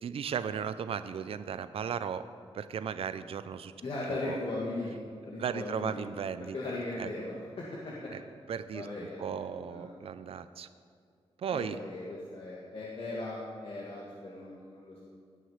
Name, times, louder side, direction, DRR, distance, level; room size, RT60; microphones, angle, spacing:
voice 1, 0.0-2.2 2.5-3.7 4.2-4.4 5.4-6.6 7.0-7.1 8.1-8.2 8.5-8.9 9.2-10.7 11.4-11.8, right 7 dB, 65° right, 12 dB, 0.4 m, -35 dB
voice 2, 3.8-4.9 5.2-5.9 6.5-8.1 8.7-9.9 11.5-15.0, left 2 dB, 60° left, -6 dB, 1.8 m, -38 dB
18.5 x 6.3 x 5.6 m, 2.3 s
wide cardioid pair, 155°, 11 cm